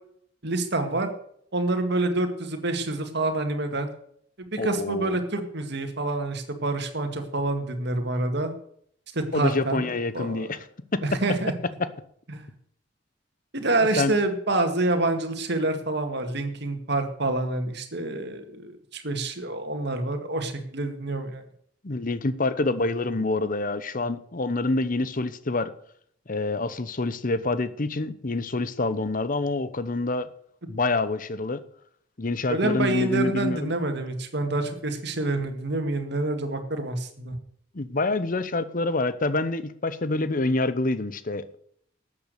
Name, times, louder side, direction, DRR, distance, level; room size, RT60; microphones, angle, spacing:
voice 1, 0.4-1.1 1.5-3.9 4.4-8.5 9.1-9.9 10.1-10.5 11.0-11.5 12.3-12.5 13.5-21.4 32.5-37.4, right 2 dB, 60° right, 7 dB, 2.1 m, -27 dB
voice 2, 4.6-5.2 9.3-10.6 10.9-11.2 14.0-14.2 21.8-25.7 26.3-30.3 30.7-31.6 32.2-33.8 37.7-41.6, left 2 dB, 45° left, 14 dB, 0.9 m, -27 dB
13.0 x 8.6 x 6.7 m, 0.66 s
head